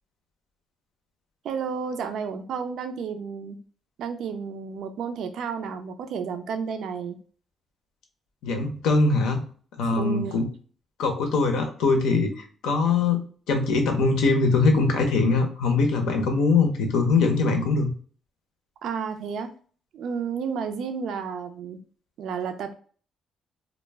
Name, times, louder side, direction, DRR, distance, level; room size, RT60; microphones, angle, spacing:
voice 1, 1.4-3.6 4.0-7.2 9.9-10.4 18.8-19.5 19.9-21.8 22.2-22.7, right 6 dB, 75° right, 7 dB, 0.3 m, -31 dB
voice 2, 8.4-9.4 9.8-10.4 11.0-17.9, left 3 dB, 85° left, 5 dB, 0.6 m, -22 dB
2.2 x 2.0 x 3.3 m, 0.43 s
cardioid pair, 90°, 0 cm